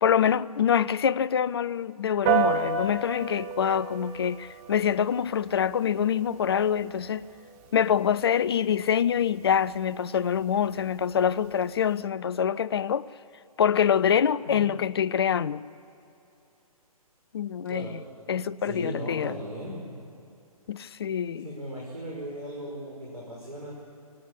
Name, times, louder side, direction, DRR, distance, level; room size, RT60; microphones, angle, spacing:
voice 1, 0.0-7.3 7.7-13.1 13.6-15.6 17.3-18.0 18.3-19.4 20.7-21.5, left 8 dB, 40° left, 0.5 m, -25 dB
Piano, 2.3-12.0, right 7 dB, 25° right, 1.5 m, -34 dB
voice 2, 18.6-20.0 21.4-23.7, equal, 70° right, 5.6 m, -37 dB
23.5 x 18.0 x 8.4 m
figure-of-eight pair, 130°, 19 cm